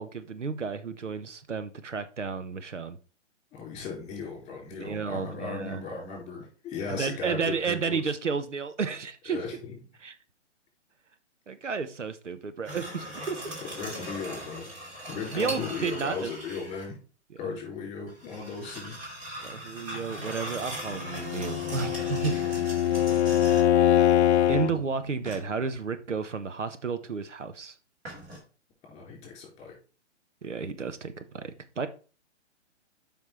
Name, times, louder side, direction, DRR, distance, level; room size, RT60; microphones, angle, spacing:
voice 1, 0.0-3.0 4.7-5.8 6.9-9.4 10.0-10.2 11.5-13.5 15.3-16.3 19.4-22.4 24.5-27.7 30.4-31.9, right 5 dB, 80° right, 11 dB, 0.9 m, -32 dB
voice 2, 3.5-8.0 9.3-9.8 13.7-14.7 15.1-17.0 17.4-19.0 22.3-22.4 28.9-29.7, left 5 dB, 20° left, 0 dB, 3.9 m, -37 dB
sound 1, 12.6-16.9 18.1-23.9 25.2-25.8 28.0-28.4, right 1 dB, 20° right, 2.8 m, -40 dB
Bowed string instrument, 21.0-24.7, left 11 dB, 65° left, 0.5 m, -23 dB
7.5 x 5.4 x 4.3 m, 0.37 s
figure-of-eight pair, 125°, 36 cm